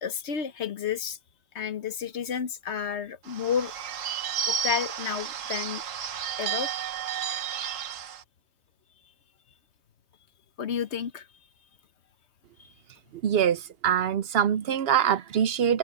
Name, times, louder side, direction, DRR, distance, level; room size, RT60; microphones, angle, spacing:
voice 1, 0.0-1.2 1.5-3.7 4.5-5.8 6.4-6.7 10.6-11.2, left 7 dB, 60° left, 1.2 m, -31 dB
Bird / Bell, 3.3-8.2, right 8 dB, 80° right, 1.3 m, -32 dB
voice 2, 13.1-15.8, right 8 dB, 60° right, 0.7 m, -24 dB
omnidirectional pair, 1.3 m